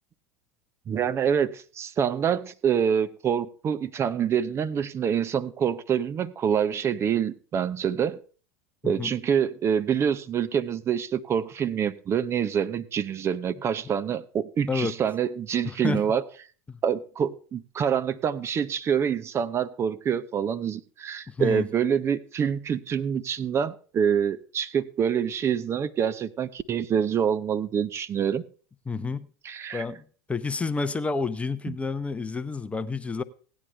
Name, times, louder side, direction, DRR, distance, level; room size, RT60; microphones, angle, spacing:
voice 1, 0.9-8.2 8.8-16.2 16.8-28.4 29.4-29.9 31.7-31.8, right 8 dB, 30° right, 0.8 m, -26 dB
voice 2, 15.6-16.0 16.7-16.8 21.3-21.7 28.9-29.3 29.7-30.0 30.3-33.2, left 4 dB, 15° left, 0.7 m, -29 dB
17.0 x 9.9 x 3.4 m
hypercardioid pair, 85°, 8 cm